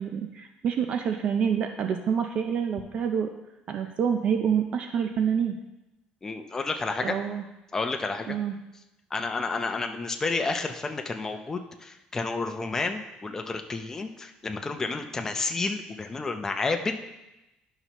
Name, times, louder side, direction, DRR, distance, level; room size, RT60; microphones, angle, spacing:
voice 1, 0.0-3.3 3.7-5.6 7.0-7.4 8.3-8.6, right 7 dB, 45° right, 6 dB, 0.5 m, -27 dB
voice 2, 6.2-7.2 7.7-8.4 9.1-17.0, left 3 dB, 20° left, 5 dB, 0.6 m, -30 dB
11.0 x 5.6 x 3.0 m, 0.96 s
cardioid pair, 150°, 3 cm